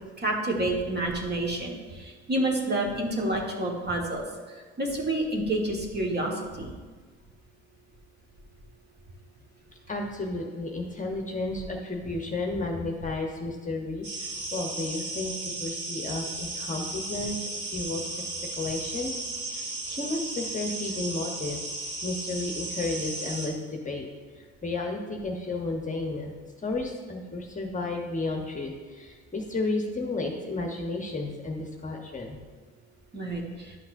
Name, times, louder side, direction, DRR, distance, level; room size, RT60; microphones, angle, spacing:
voice 1, 0.2-6.7 33.1-33.8, right 1 dB, 30° right, 0 dB, 1.6 m, -29 dB
voice 2, 9.9-17.3 17.7-18.2 18.5-19.1 19.5-21.7 22.0-24.1 24.4-26.3 26.6-32.4, left 2 dB, 20° left, 1 dB, 1.0 m, -32 dB
sound 1, 14.0-23.5, right 2 dB, 90° right, 1.6 m, -35 dB
10.5 x 5.8 x 2.6 m, 1.4 s
hypercardioid pair, 65°, 34 cm